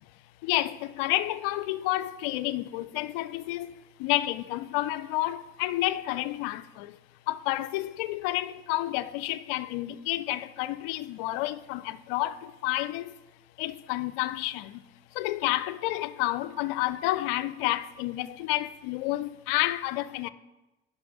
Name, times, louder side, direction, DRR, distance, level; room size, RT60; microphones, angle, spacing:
voice 1, 0.4-3.7 4.0-6.9 7.3-12.4 12.6-13.1 13.6-14.7 15.2-20.3, left 16 dB, 75° left, 0.5 m, -30 dB
10.5 x 5.6 x 4.8 m
hypercardioid pair, 60°, 30 cm